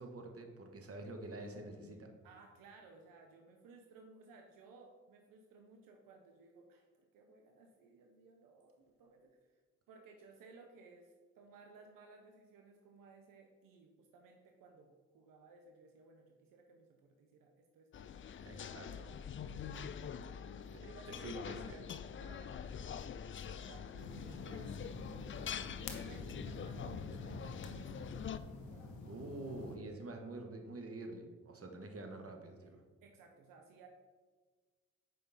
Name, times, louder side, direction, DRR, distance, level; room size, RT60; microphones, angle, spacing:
voice 1, 0.0-2.1 18.4-19.1 19.5-19.6 20.7-20.8 21.2-21.8 29.0-32.8, right 2 dB, 45° right, 4 dB, 1.3 m, -47 dB
voice 2, 2.2-9.6 9.9-18.7 19.4-19.9 20.8-21.9 22.2-23.0 23.4-25.8 26.1-30.2 33.0-33.9, right 3 dB, 80° right, 3 dB, 0.7 m, -60 dB
sound 1, 17.9-28.4, left 7 dB, 35° left, 0.4 m, -45 dB
sound 2, 24.0-29.8, left 3 dB, 85° left, 0.9 m, -47 dB
6.7 x 5.2 x 4.0 m, 1.4 s
hypercardioid pair, 45°, 33 cm